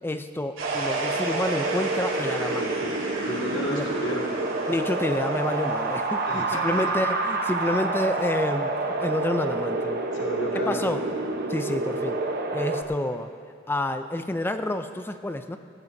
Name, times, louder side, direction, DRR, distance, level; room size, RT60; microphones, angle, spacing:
voice 1, 0.0-3.0 3.7-3.9 4.7-8.7 9.0-10.0 10.7-11.0 11.5-12.2 12.5-13.3 13.7-15.6, left 1 dB, 10° left, 8 dB, 0.4 m, -29 dB
Wind, 0.6-12.8, right 3 dB, 50° right, 1.0 m, -28 dB
sound 1, 0.6-10.4, right 3 dB, 80° right, 2.7 m, -38 dB
voice 2, 3.2-4.3 6.3-6.8 7.6-7.7 10.1-10.9, left 1 dB, 70° left, -3 dB, 2.0 m, -32 dB
19.0 x 16.0 x 2.7 m, 2.3 s
head